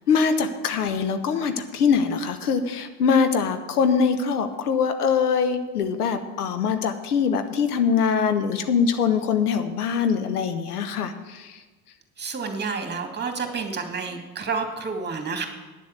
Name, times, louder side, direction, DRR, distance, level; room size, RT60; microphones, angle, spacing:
voice 1, 0.1-11.6, left 6 dB, 80° left, 9 dB, 1.1 m, -23 dB
voice 2, 12.2-15.5, right 4 dB, 20° right, 4 dB, 2.3 m, -29 dB
10.0 x 7.2 x 8.3 m, 1.2 s
hypercardioid pair, 70°, 45 cm